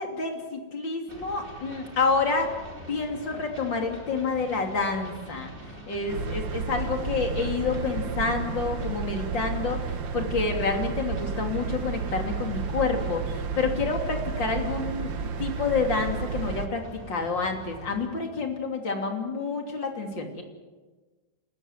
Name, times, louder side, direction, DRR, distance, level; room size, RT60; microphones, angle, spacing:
voice 1, 0.0-2.5 2.9-5.5 5.9-20.4, left 4 dB, 70° left, 3 dB, 3.7 m, -28 dB
sound 1, 1.1-18.1, equal, 25° right, 3.7 m, -45 dB
sound 2, 6.1-16.7, right 6 dB, 75° right, 1.8 m, -32 dB
30.0 x 13.5 x 9.4 m, 1.3 s
omnidirectional pair, 2.1 m